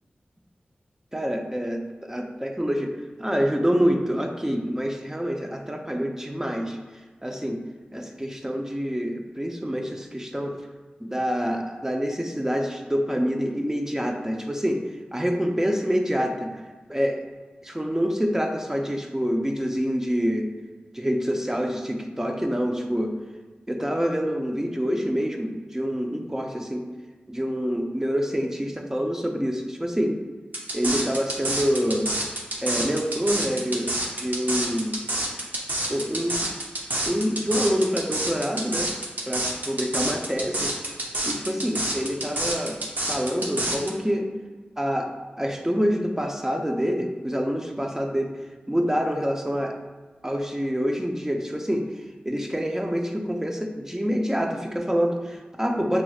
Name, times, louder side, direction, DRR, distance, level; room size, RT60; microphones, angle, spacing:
voice 1, 1.1-2.9 3.2-6.8 7.2-7.6 7.9-10.6 11.0-14.8 15.1-16.5 16.9-17.2 17.6-20.5 20.9-23.1 23.7-26.9 27.3-30.2 30.7-32.1 32.6-35.0 35.9-36.5 37.0-38.9 39.3-40.7 41.3-42.8 43.1-44.3 44.8-45.1 45.4-48.3 48.7-49.7 50.2-51.9 52.2-56.0, equal, 15° right, 3 dB, 0.6 m, -26 dB
sound 1, 30.5-43.9, right 1 dB, 60° right, 0.8 m, -28 dB
6.1 x 3.0 x 2.4 m, 1.3 s
cardioid pair, 40°, 3 cm